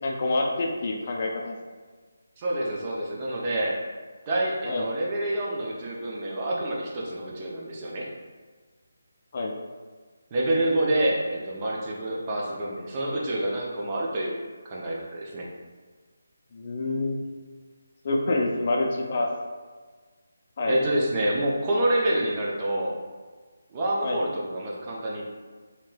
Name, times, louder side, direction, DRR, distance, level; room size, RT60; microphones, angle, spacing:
voice 1, 0.0-1.6 4.7-4.8 9.3-9.5 16.5-17.2 18.0-19.3 20.6-20.8 24.0-24.2, left 2 dB, 45° left, 0 dB, 0.4 m, -27 dB
voice 2, 2.4-3.8 4.3-8.1 10.3-14.4 14.6-15.5 20.6-23.0 23.7-25.2, right 1 dB, 25° right, -3 dB, 0.5 m, -27 dB
3.1 x 2.8 x 2.2 m, 1.4 s
figure-of-eight pair, 160°, 0 cm